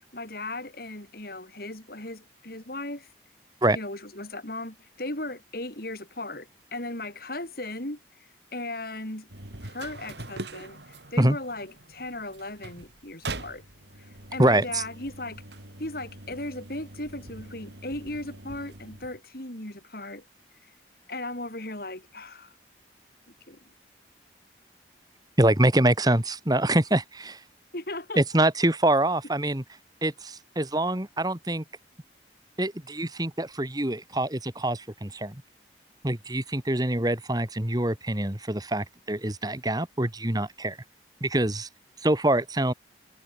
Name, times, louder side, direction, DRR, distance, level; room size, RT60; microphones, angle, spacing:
voice 1, 0.1-3.1 3.7-9.3 9.6-13.6 14.0-15.4 15.8-20.2 21.1-22.5 23.5-23.6 27.7-28.2, left 2 dB, 55° left, 5.1 m, -37 dB
sound 1, 9.3-19.2, right 2 dB, 70° right, 4.9 m, -43 dB
voice 2, 14.4-14.8 25.4-27.4 28.2-29.6 30.0-31.6 32.6-35.4 36.0-40.8 41.2-41.7 42.0-42.7, right 1 dB, 20° right, 1.9 m, -25 dB
head